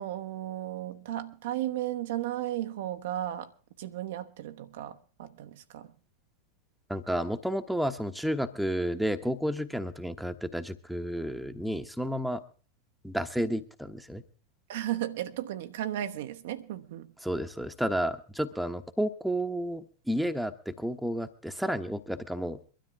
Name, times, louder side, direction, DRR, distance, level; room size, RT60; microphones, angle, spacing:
voice 1, 0.0-3.5 3.8-5.9 14.7-17.1, right 13 dB, 55° right, 0.9 m, -35 dB
voice 2, 6.9-12.4 13.0-14.2 17.2-22.6, equal, ahead, 1.1 m, -31 dB
23.0 x 13.0 x 3.5 m
figure-of-eight pair, 90°, 0 cm